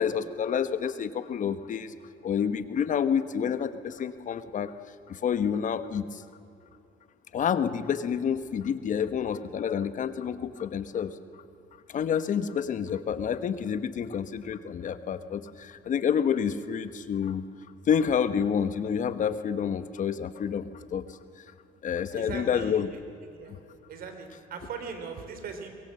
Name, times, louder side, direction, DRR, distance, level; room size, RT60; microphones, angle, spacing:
voice 1, 0.0-1.9 2.2-4.7 5.1-6.2 7.3-11.1 11.9-17.4 17.9-21.0 21.8-22.9, left 7 dB, 50° left, 12 dB, 1.2 m, -28 dB
voice 2, 22.1-23.0 23.4-23.6 23.9-25.7, right 5 dB, 60° right, 6 dB, 3.7 m, -39 dB
23.0 x 22.5 x 7.7 m, 2.6 s
cardioid pair, 110°, 17 cm